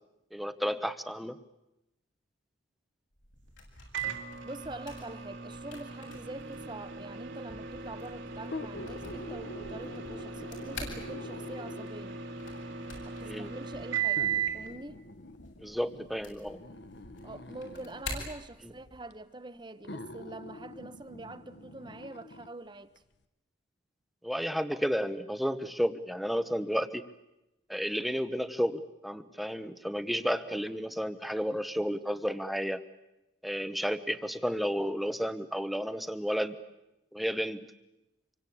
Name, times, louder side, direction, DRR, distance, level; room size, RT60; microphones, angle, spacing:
voice 1, 0.3-1.4 13.2-13.5 15.6-16.6 18.6-18.7 24.2-27.0 27.7-32.8 33.4-36.5 37.1-37.7, equal, ahead, 1.0 m, -32 dB
sound 1, 3.1-19.1, left 2 dB, 75° left, 7.7 m, -48 dB
Microwave oven, 3.9-14.7, right 7 dB, 65° right, 2.3 m, -37 dB
voice 2, 4.4-12.2 13.0-14.2 14.5-15.0 17.2-23.0, right 2 dB, 25° right, 1.1 m, -45 dB
sound 2, 8.4-12.1 13.0-13.1 14.2-18.1 19.1-19.2 19.8-22.5 23.0-23.1, left 2 dB, 55° left, 1.1 m, -45 dB
26.5 x 24.0 x 8.6 m
head